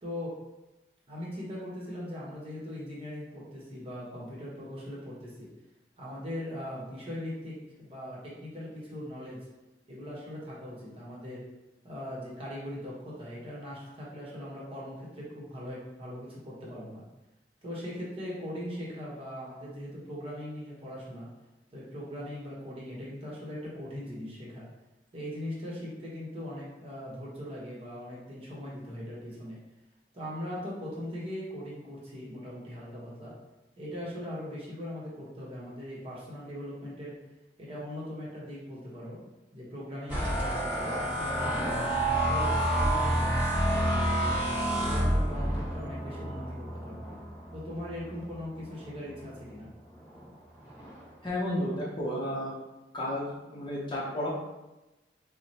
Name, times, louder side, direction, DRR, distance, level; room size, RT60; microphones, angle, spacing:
voice 1, 0.0-0.3 1.1-5.5 6.0-9.5 9.9-11.4 11.8-17.0 17.6-21.3 21.7-24.7 25.1-29.6 30.1-33.3 33.8-37.2 37.6-39.2 39.5-43.3 43.6-44.4 44.8-47.1 47.5-49.7, left 1 dB, 35° right, -6 dB, 1.1 m, -40 dB
sound 1, 40.1-49.5 50.0-50.3 50.6-51.1, right 1 dB, 10° right, 1.5 m, -29 dB
voice 2, 51.2-52.5 52.9-54.3, left 1 dB, 25° left, -5 dB, 0.7 m, -32 dB
4.6 x 2.1 x 2.8 m, 1.0 s
head